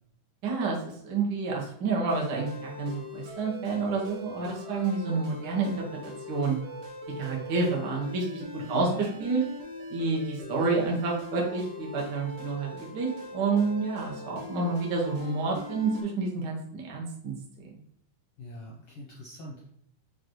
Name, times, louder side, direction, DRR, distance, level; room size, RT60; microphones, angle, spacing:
voice 1, 0.4-5.8 6.3-6.5 7.2-9.4 9.9-17.7, right 4 dB, 90° right, -2 dB, 0.9 m, -29 dB
sound 1, 2.1-16.0, left 1 dB, 65° right, 1.4 m, -41 dB
voice 2, 18.4-19.7, equal, 75° left, -4 dB, 1.2 m, -40 dB
6.6 x 2.5 x 3.0 m, 0.68 s
omnidirectional pair, 3.6 m